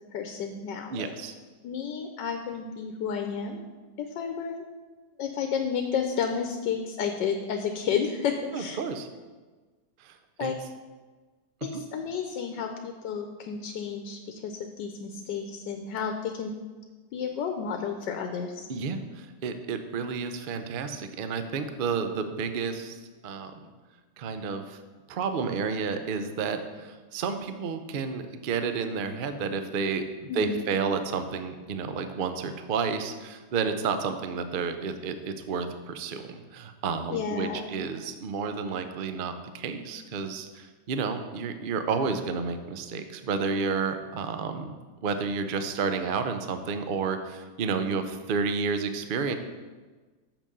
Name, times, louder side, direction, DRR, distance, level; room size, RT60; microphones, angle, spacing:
voice 1, 0.1-1.1 1.6-3.6 4.0-4.6 5.2-8.8 10.4-10.5 11.6-16.5 17.1-18.7 30.3-30.8 37.1-37.7, left 6 dB, 85° left, 5 dB, 1.4 m, -31 dB
voice 2, 0.9-1.3 8.5-9.1 10.0-10.5 11.7-11.8 18.7-23.7 24.2-24.8 25.1-44.7 45.0-49.3, right 5 dB, 75° right, 8 dB, 0.4 m, -31 dB
6.8 x 6.0 x 6.7 m, 1.3 s
omnidirectional pair, 1.9 m